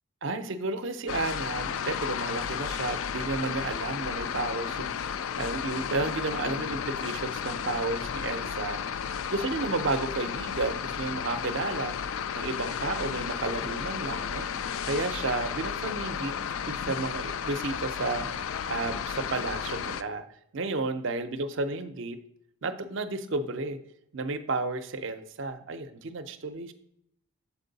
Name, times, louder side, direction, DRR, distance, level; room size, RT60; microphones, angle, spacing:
voice 1, 0.2-16.3 16.7-20.3 20.5-22.2 22.6-23.8 24.1-26.7, right 3 dB, 60° right, 10 dB, 0.6 m, -32 dB
sound 1, 1.1-20.0, left 7 dB, 65° left, 0.3 m, -33 dB
7.2 x 4.5 x 3.9 m, 0.73 s
head